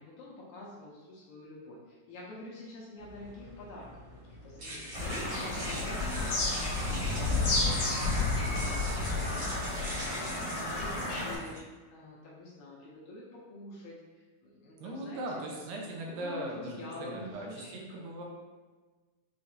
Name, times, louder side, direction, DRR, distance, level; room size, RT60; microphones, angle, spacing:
voice 1, 0.0-3.9 4.4-6.6 6.9-7.8 8.1-10.1 10.4-14.0 14.4-15.4 16.1-18.0, left 2 dB, 75° left, -5 dB, 1.8 m, -46 dB
sound 1, 3.0-11.6, right 1 dB, 70° right, 0.9 m, -42 dB
Bird vocalization bird call bird song, 4.9-11.3, left 2 dB, 55° left, 1.3 m, -31 dB
voice 2, 7.6-8.0 14.8-18.2, right 2 dB, 85° right, -1 dB, 2.3 m, -40 dB
6.6 x 2.5 x 2.7 m, 1.3 s
omnidirectional pair, 3.9 m